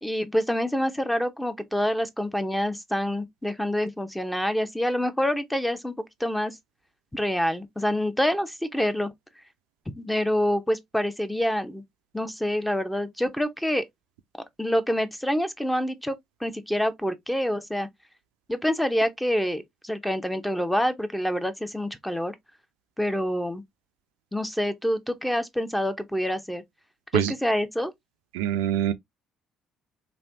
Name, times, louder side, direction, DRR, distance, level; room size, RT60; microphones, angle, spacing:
voice 1, 0.0-6.6 7.1-9.1 9.9-11.8 12.1-13.8 14.6-16.2 16.4-17.9 18.5-22.3 23.0-23.6 24.3-26.6 27.1-27.9, equal, 5° left, 0.8 m, -26 dB
voice 2, 28.3-28.9, right 11 dB, 80° right, 0.3 m, -24 dB
3.2 x 2.6 x 2.7 m
hypercardioid pair, 55°, 0 cm